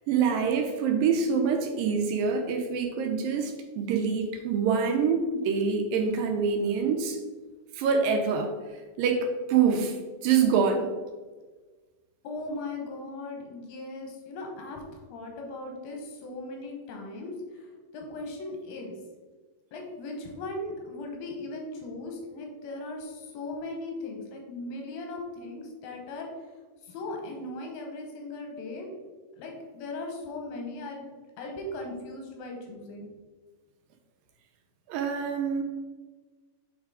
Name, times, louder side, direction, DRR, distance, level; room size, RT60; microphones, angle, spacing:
voice 1, 0.1-7.2 7.8-8.5 9.0-10.0 10.2-10.9 34.9-35.6, right 6 dB, 80° right, 3 dB, 2.4 m, -25 dB
voice 2, 12.2-17.7 17.9-19.0 19.7-26.3 26.9-28.9 29.4-31.1 31.4-33.1, left 2 dB, 90° left, 1 dB, 2.9 m, -38 dB
7.3 x 3.6 x 4.9 m, 1.3 s
omnidirectional pair, 4.1 m